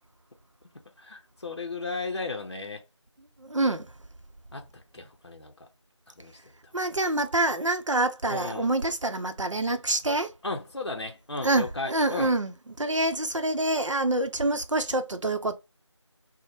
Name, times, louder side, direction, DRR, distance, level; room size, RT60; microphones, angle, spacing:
voice 1, 1.0-2.8 4.5-5.7 6.2-6.5 8.3-8.7 10.4-12.3, left 3 dB, 60° left, 0.6 m, -35 dB
voice 2, 3.4-3.9 6.7-10.3 11.4-12.5 12.8-15.5, right 2 dB, 90° right, 0.6 m, -26 dB
2.6 x 2.1 x 3.0 m
figure-of-eight pair, 175°, 15 cm